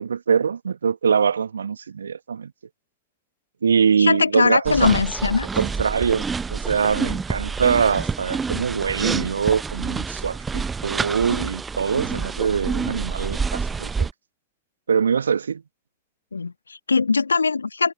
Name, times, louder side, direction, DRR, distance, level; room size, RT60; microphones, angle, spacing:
voice 1, 0.0-2.5 3.6-4.9 5.6-14.1 14.9-15.6, right 6 dB, 70° right, 1.4 m, -23 dB
voice 2, 4.0-5.5 16.3-17.9, left 4 dB, 75° left, 1.5 m, -21 dB
sound 1, 4.7-14.1, right 5 dB, 15° right, 0.9 m, -28 dB
figure-of-eight pair, 90°, 0 cm